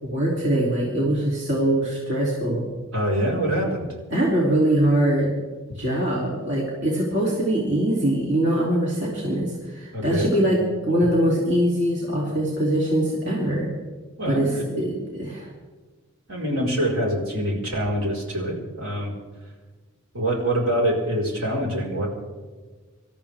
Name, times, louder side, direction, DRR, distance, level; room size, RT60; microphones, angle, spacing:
voice 1, 0.0-2.6 4.1-5.3 5.7-13.7 14.2-15.5, right 1 dB, 55° right, -5 dB, 3.3 m, -23 dB
voice 2, 2.9-3.9 9.9-10.3 14.2-14.9 16.3-19.1 20.1-22.1, right 1 dB, 70° right, -2 dB, 4.8 m, -25 dB
26.5 x 13.5 x 3.6 m, 1.4 s
head